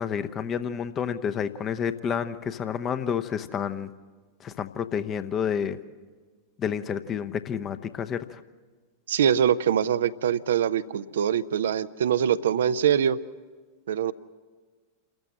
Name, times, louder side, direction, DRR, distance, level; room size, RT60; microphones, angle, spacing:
voice 1, 0.0-3.9 4.4-5.8 6.6-8.4, left 7 dB, 30° left, 10 dB, 0.9 m, -29 dB
voice 2, 9.1-13.2 13.9-14.1, right 9 dB, 60° right, 13 dB, 0.6 m, -23 dB
28.5 x 14.0 x 7.5 m, 1.5 s
figure-of-eight pair, 90°, 0 cm